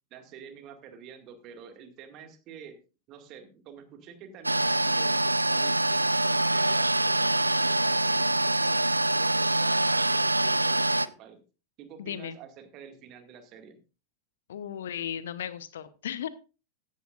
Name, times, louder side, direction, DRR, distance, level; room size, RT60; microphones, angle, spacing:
voice 1, 0.1-2.8 3.1-11.4 11.8-13.8, right 7 dB, 35° right, 7 dB, 2.1 m, -48 dB
sound 1, 4.4-11.1, right 1 dB, 85° right, 0.4 m, -25 dB
voice 2, 12.0-12.4 14.5-16.3, left 9 dB, 60° left, 16 dB, 0.9 m, -35 dB
15.0 x 10.5 x 2.5 m, 0.33 s
figure-of-eight pair, 90°, 0 cm